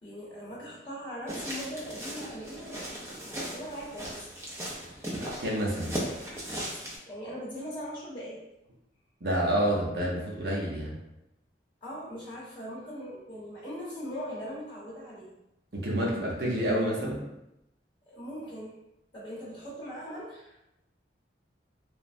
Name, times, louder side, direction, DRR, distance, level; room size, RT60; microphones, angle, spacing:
voice 1, 0.0-4.3 7.1-8.4 11.8-15.3 18.1-18.7 19.1-20.6, equal, 30° left, -9 dB, 0.8 m, -40 dB
sound 1, 1.3-7.0, equal, 15° right, 0.4 m, -37 dB
voice 2, 5.4-6.0 9.2-10.9 15.7-17.3, equal, 60° right, -3 dB, 0.7 m, -28 dB
3.1 x 2.0 x 2.5 m, 0.87 s
head